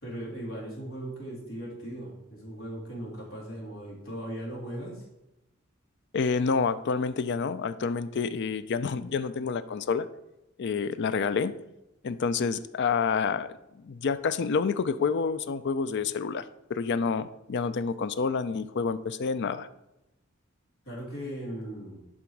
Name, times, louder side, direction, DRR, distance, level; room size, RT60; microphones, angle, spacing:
voice 1, 0.0-5.0 20.8-22.0, right 1 dB, 75° left, -3 dB, 2.8 m, -38 dB
voice 2, 6.1-10.1 10.6-11.5 12.0-13.5 13.8-16.4 16.7-19.7, left 5 dB, 55° left, 13 dB, 0.4 m, -28 dB
11.0 x 3.8 x 4.6 m, 0.92 s
head